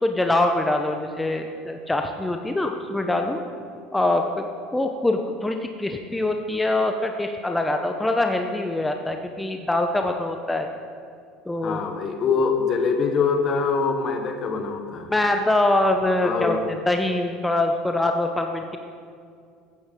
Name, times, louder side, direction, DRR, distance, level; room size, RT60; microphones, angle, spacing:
voice 1, 0.0-3.4 3.9-4.5 4.7-10.7 11.5-11.8 15.1-16.6 16.9-18.8, left 2 dB, 10° left, 4 dB, 0.8 m, -24 dB
voice 2, 11.6-15.1 16.2-16.7, left 5 dB, 40° left, 6 dB, 1.3 m, -24 dB
14.5 x 9.5 x 3.8 m, 2.3 s
hypercardioid pair, 75°, 0 cm